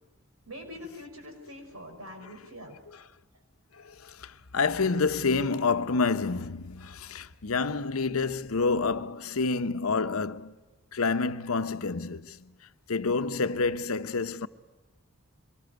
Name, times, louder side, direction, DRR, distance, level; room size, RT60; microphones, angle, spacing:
voice 1, 0.5-2.9, left 1 dB, 90° right, 5.7 m, -44 dB
voice 2, 3.8-10.5 10.9-12.5 12.9-14.5, left 4 dB, 85° left, 0.8 m, -28 dB
24.0 x 20.0 x 9.4 m
head